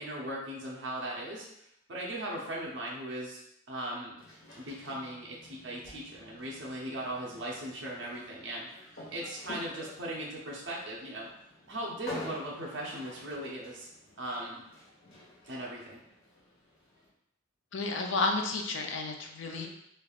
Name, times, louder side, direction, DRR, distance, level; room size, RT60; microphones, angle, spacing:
voice 1, 0.0-1.5 1.9-3.4 3.7-4.1 4.6-11.3 11.7-13.9 14.2-14.6 15.5-16.0 19.5-19.7, right 1 dB, 65° right, -4 dB, 0.6 m, -38 dB
sound 1, 4.2-17.1, left 1 dB, 85° left, 1.0 m, -49 dB
voice 2, 17.7-19.7, left 3 dB, 65° left, 3 dB, 0.4 m, -31 dB
3.3 x 2.3 x 2.3 m, 0.77 s
head